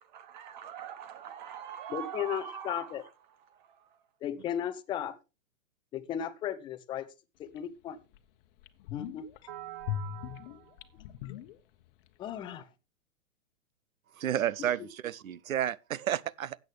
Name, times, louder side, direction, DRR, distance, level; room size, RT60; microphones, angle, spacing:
voice 1, 0.0-3.1 3.7-3.9 9.5-10.9, right 9 dB, 35° right, 0.6 m, -43 dB
voice 2, 1.9-3.0 4.2-5.2 5.9-7.1 7.4-8.0 8.9-9.2 12.2-12.7 14.6-14.9, left 10 dB, 10° left, 0.5 m, -35 dB
sound 1, 7.6-7.7 8.1-8.2 8.6-9.4 9.8-12.1 12.3-12.4, left 10 dB, 40° left, 1.0 m, -39 dB
voice 3, 14.2-16.6, right 11 dB, 85° right, 0.7 m, -31 dB
13.0 x 8.4 x 3.3 m
hypercardioid pair, 135°, 40 cm